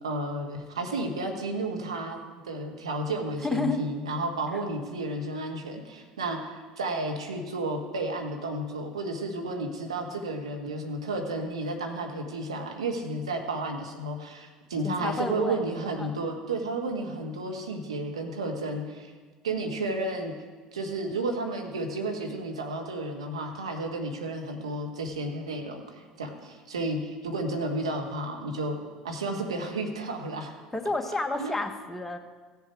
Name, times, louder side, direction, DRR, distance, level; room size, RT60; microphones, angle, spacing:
voice 1, 0.0-19.1 19.4-20.3 20.7-28.8 29.0-30.5 31.4-31.5, right 2 dB, 90° right, 3 dB, 1.2 m, -32 dB
voice 2, 3.4-3.8 14.8-15.6 16.0-16.2 30.7-32.2, left 2 dB, 10° left, 4 dB, 1.3 m, -30 dB
15.5 x 7.1 x 4.5 m, 1.5 s
hypercardioid pair, 70°, 3 cm